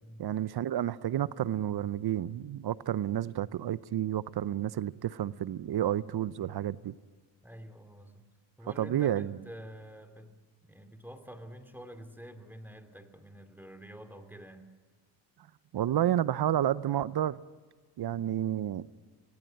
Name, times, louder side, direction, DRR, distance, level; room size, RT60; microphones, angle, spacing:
voice 1, 0.2-6.9 8.8-9.3 15.7-17.4 18.0-18.9, right 11 dB, 55° right, 0.7 m, -30 dB
voice 2, 7.4-8.2 8.6-10.3 10.6-14.7, equal, 5° right, 2.5 m, -48 dB
24.0 x 17.0 x 9.1 m
supercardioid pair, 65°, 47 cm